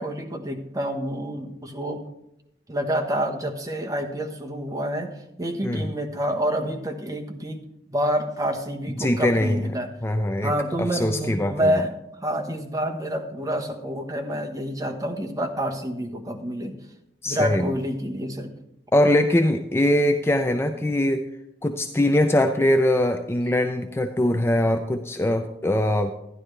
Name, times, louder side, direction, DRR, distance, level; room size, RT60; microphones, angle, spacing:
voice 1, 0.0-2.0 2.7-5.1 5.4-7.6 7.9-9.9 10.4-11.9 12.2-16.7 17.3-18.5, equal, 20° right, 1 dB, 1.2 m, -28 dB
voice 2, 9.0-9.6 10.0-11.8 17.2-17.7 18.9-21.2 21.6-26.1, left 1 dB, 15° left, 6 dB, 0.4 m, -22 dB
12.5 x 10.5 x 3.3 m, 0.83 s
head